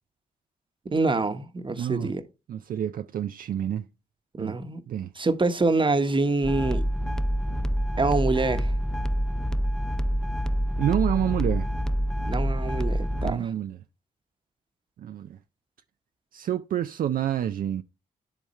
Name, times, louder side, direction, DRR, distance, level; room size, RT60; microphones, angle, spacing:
voice 1, 0.8-2.2 4.4-4.8 5.2-6.8 8.0-8.7 12.3-13.5, right 3 dB, 30° right, 1.1 m, -25 dB
voice 2, 1.8-2.1 2.5-3.8 4.4-4.6 4.9-5.1 10.8-11.7 13.2-13.8 15.0-15.4 16.3-17.8, right 10 dB, 60° right, 0.4 m, -28 dB
sound 1, 6.4-13.3, equal, 5° left, 0.4 m, -27 dB
10.5 x 3.6 x 4.2 m
supercardioid pair, 55°, 16 cm